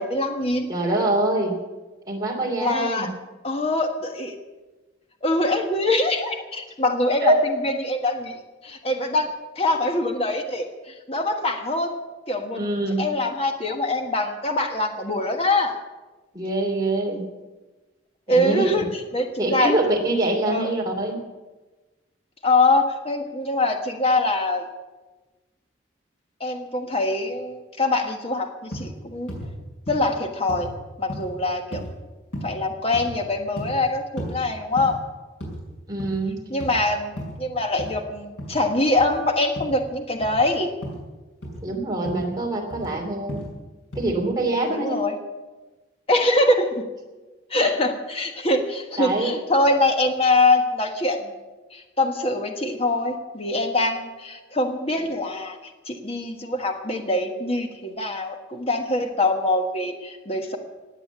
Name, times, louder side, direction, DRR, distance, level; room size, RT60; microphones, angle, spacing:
voice 1, 0.0-0.7 2.6-3.1 3.4-4.3 5.2-7.3 7.6-9.3 9.6-12.0 12.3-12.6 13.0-15.7 18.3-19.7 20.5-20.7 22.4-24.6 26.4-29.3 29.9-30.7 31.0-31.8 32.4-35.0 36.5-40.7 44.7-45.1 46.1-46.8 47.5-51.3 51.7-55.6 55.9-60.6, left 2 dB, 30° left, 4 dB, 1.3 m, -23 dB
voice 2, 0.7-1.5 2.1-3.1 7.2-7.4 12.5-13.1 16.3-17.2 18.3-18.6 19.4-21.2 35.9-36.4 41.6-43.5 44.0-45.0 47.6-47.7 49.0-49.3, right 2 dB, 20° right, -1 dB, 2.9 m, -24 dB
sound 1, 28.7-28.9 29.3-29.5 29.9-30.1 30.5-30.7 31.1-31.3 31.7-31.9 32.3-32.6 32.9-33.2 33.6-33.8 34.2-34.3 34.8-35.0 35.4-35.6 35.9-36.2 36.6-36.8 37.2-37.4 37.8-38.0 38.4-38.6 39.0-39.2 39.6-39.8 40.2-40.4 40.8-41.0 41.4-41.6 42.1-42.3 42.7-42.9 43.3-43.5 43.9-44.1, equal, 75° left, 5.9 m, -34 dB
16.5 x 9.2 x 8.1 m, 1.2 s
head